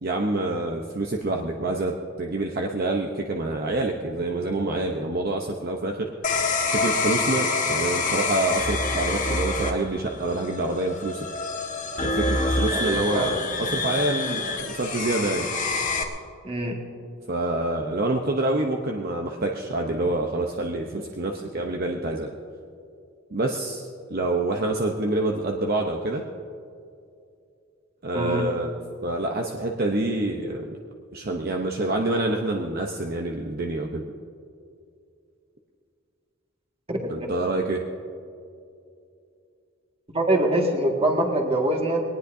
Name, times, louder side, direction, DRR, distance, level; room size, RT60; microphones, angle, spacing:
voice 1, 0.0-6.1 6.7-11.3 12.0-15.5 17.3-22.3 23.3-26.2 28.0-28.7 29.0-30.7 31.1-34.0 37.1-37.8, right 2 dB, 50° right, 2 dB, 0.8 m, -27 dB
sound 1, 6.2-16.0, left 3 dB, 40° left, 1.5 m, -27 dB
voice 2, 12.7-13.3 16.4-16.8 28.1-28.5 36.9-37.3 40.1-42.0, right 1 dB, 30° right, 0 dB, 2.0 m, -24 dB
21.5 x 19.0 x 2.7 m, 2.5 s
head